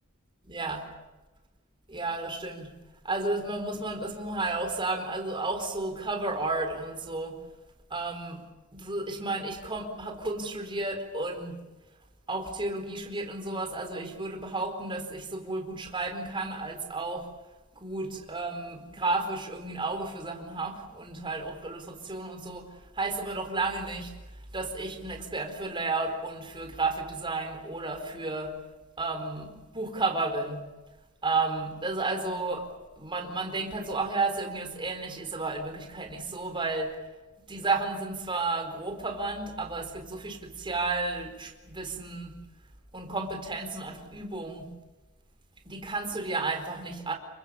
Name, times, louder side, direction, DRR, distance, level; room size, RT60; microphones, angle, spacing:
voice 1, 0.4-0.9 1.9-2.7 3.0-7.4 7.9-8.4 8.7-11.6 12.3-17.3 17.7-22.7 22.9-24.1 24.5-28.5 29.0-30.6 31.2-32.7 33.0-36.9 37.5-42.3 42.9-44.7 45.6-47.1, right 3 dB, 25° right, 4 dB, 4.5 m, -32 dB
29.0 x 25.0 x 7.2 m, 1.1 s
head